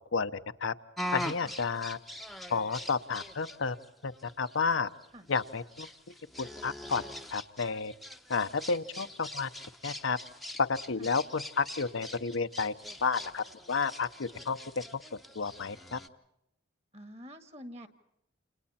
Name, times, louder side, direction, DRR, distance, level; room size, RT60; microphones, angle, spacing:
sound 1, 1.0-16.1, left 1 dB, ahead, 0.9 m, -43 dB
voice 1, 1.1-2.0 2.5-3.8 4.0-4.1 4.4-4.9 5.3-5.9 6.4-7.0 7.3-7.9 8.3-9.5 9.8-10.2 10.6-12.7 13.0-14.6 15.3-16.0, left 5 dB, 75° left, 9 dB, 0.9 m, -31 dB
voice 2, 16.9-17.9, equal, 30° right, 9 dB, 1.9 m, -46 dB
29.0 x 29.0 x 4.3 m, 0.79 s
head